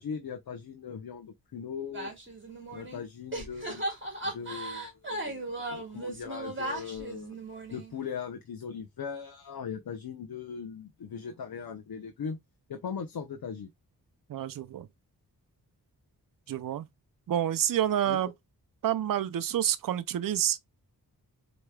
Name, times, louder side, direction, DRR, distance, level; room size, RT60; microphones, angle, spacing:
voice 1, 0.0-2.1 2.7-3.8 4.2-7.4 7.7-12.4 12.7-13.7 18.1-18.2, left 6 dB, 65° left, 0.8 m, -39 dB
sound 1, 1.9-3.0 3.3-8.0, right 1 dB, 30° right, 1.9 m, -37 dB
voice 2, 14.3-14.9 16.5-16.9 17.3-18.3 18.8-20.6, right 11 dB, 60° right, 0.5 m, -28 dB
4.6 x 3.1 x 2.2 m
cardioid pair, 50°, 39 cm